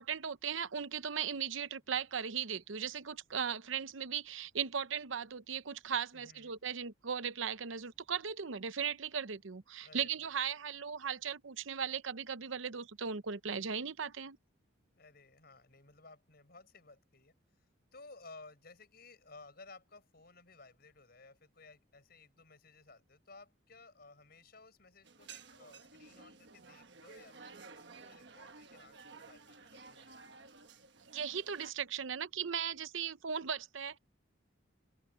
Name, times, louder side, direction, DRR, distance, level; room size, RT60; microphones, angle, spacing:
voice 1, 0.0-14.4 31.1-34.0, right 7 dB, 75° right, 0.8 m, -37 dB
voice 2, 6.1-6.6 9.8-10.3 15.0-17.7 17.9-30.2, left 3 dB, 50° left, 5.7 m, -57 dB
sound 1, 25.0-31.7, right 4 dB, 60° right, 1.4 m, -54 dB
open air
head